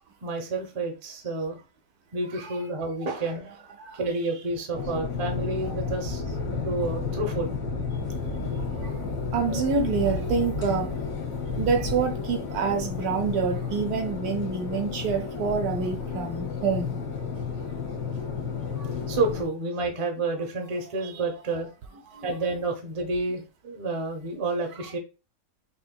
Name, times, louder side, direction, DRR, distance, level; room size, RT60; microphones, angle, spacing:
voice 1, 0.2-1.6 2.1-3.6 4.0-7.5 19.1-21.7 22.2-25.0, right 3 dB, 30° right, 0.6 m, -30 dB
sound 1, 4.7-19.4, left 4 dB, 75° left, 1.6 m, -31 dB
voice 2, 9.3-10.9 11.6-17.0 22.2-22.3, right 5 dB, 70° right, 1.1 m, -27 dB
5.5 x 3.0 x 2.3 m
omnidirectional pair, 1.8 m